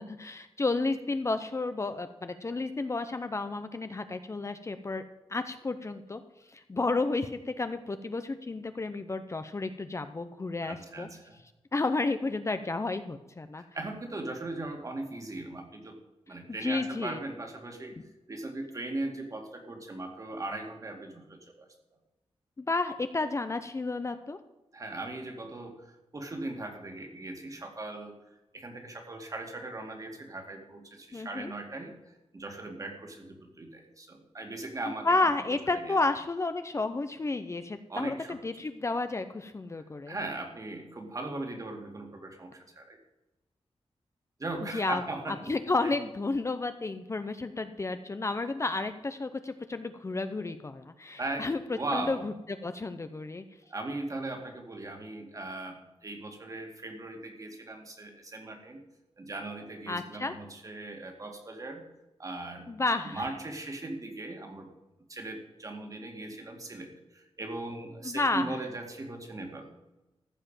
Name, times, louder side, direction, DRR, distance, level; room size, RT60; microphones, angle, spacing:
voice 1, 0.0-5.0 5.3-6.2 6.5-11.1 11.7-13.6 16.6-17.2 22.6-24.4 31.1-31.5 35.0-40.2 44.7-45.0 45.3-51.6 51.9-52.3 52.6-53.4 59.9-60.3 62.7-63.3 68.0-68.5, left 3 dB, 30° left, 9 dB, 0.6 m, -31 dB
voice 2, 10.6-11.4 13.6-16.0 16.3-18.0 18.3-21.7 24.7-28.1 28.5-31.9 32.3-35.1 35.5-36.0 37.9-38.4 40.1-43.0 44.4-45.4 45.8-45.9 51.2-51.5 51.8-52.3 53.7-58.8 59.2-61.8 62.2-62.7 63.0-64.7 65.1-69.7, right 2 dB, 35° right, 3 dB, 2.2 m, -39 dB
14.5 x 5.7 x 9.0 m, 1.0 s
wide cardioid pair, 145°, 10 cm